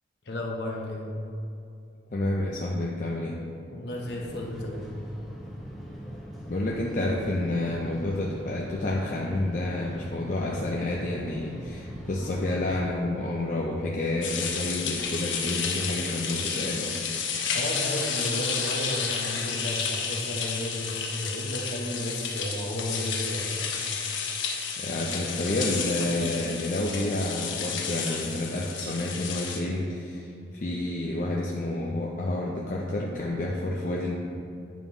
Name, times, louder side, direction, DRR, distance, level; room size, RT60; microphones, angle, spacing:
voice 1, 0.2-1.1 3.7-4.9 17.5-23.6, left 1 dB, 60° left, 0 dB, 0.9 m, -33 dB
voice 2, 2.1-3.4 6.5-17.0 24.8-34.2, left 1 dB, 45° left, -3 dB, 0.5 m, -29 dB
sound 1, 4.0-12.9, equal, ahead, 0.7 m, -41 dB
sound 2, 14.2-29.6, left 6 dB, 85° left, 0.8 m, -31 dB
9.1 x 3.0 x 5.4 m, 2.5 s
head